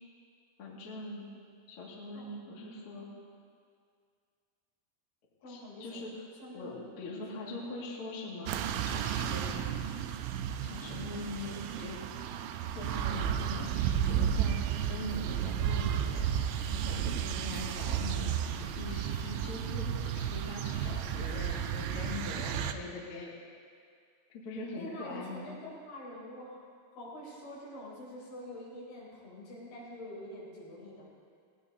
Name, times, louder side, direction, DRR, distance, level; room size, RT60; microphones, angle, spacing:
voice 1, 0.6-1.3 1.7-3.1 5.4-6.2 6.5-9.5 10.6-12.0 12.6-23.4 24.3-25.5, left 2 dB, 45° left, -4 dB, 2.0 m, -42 dB
voice 2, 5.4-6.0 6.4-6.7 7.1-7.8 24.8-31.1, left 1 dB, 80° left, -7 dB, 6.5 m, -46 dB
sound 1, 8.5-22.7, right 9 dB, 85° right, 2.8 m, -33 dB
18.5 x 18.5 x 2.7 m, 2.2 s
omnidirectional pair, 5.2 m